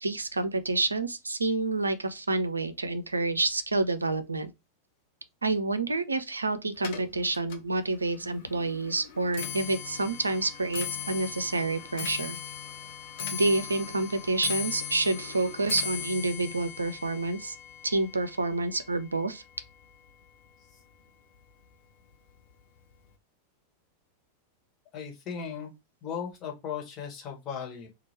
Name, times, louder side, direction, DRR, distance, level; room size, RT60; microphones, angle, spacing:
voice 1, 0.0-4.5 5.4-12.4 13.3-17.6 17.8-19.4, right 2 dB, 80° right, 0.5 m, -28 dB
Clock, 6.8-20.1 20.4-20.9 21.7-21.8 22.1-22.5 22.8-22.9, left 9 dB, 55° left, 0.9 m, -39 dB
voice 2, 24.9-25.7 26.0-27.9, left 7 dB, 30° left, 1.4 m, -37 dB
2.9 x 2.4 x 4.2 m
figure-of-eight pair, 90°, 0 cm